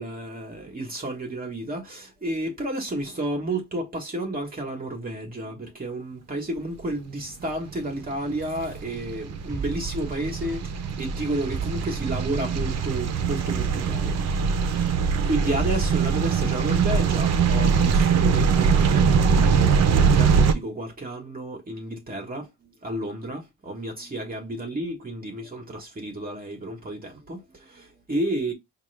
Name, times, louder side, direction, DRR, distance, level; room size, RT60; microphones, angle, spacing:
voice 1, 0.0-10.6 11.0-14.9 15.2-28.5, right 1 dB, 30° right, 1.2 m, -31 dB
sound 1, 7.7-20.5, right 6 dB, 60° right, 0.7 m, -22 dB
sound 2, 9.5-10.9 11.2-11.3 11.5-12.9 13.2-13.3 13.5-15.2 15.5-16.9 17.2-17.3, right 5 dB, 10° right, 0.3 m, -37 dB
4.6 x 2.5 x 3.2 m
cardioid pair, 90°, 30 cm